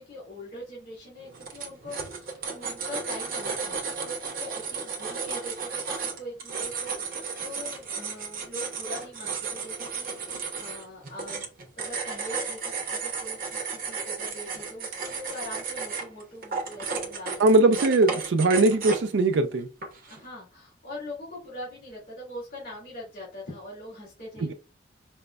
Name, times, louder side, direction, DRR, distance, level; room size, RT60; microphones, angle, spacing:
voice 1, 0.0-18.0 20.0-24.5, left 1 dB, 50° left, 1.8 m, -42 dB
sound 1, 1.2-19.2 19.8-20.2, right 5 dB, 50° right, 0.7 m, -34 dB
voice 2, 17.4-19.7 24.4-24.5, right 2 dB, 75° right, 0.4 m, -20 dB
5.0 x 2.1 x 2.2 m
head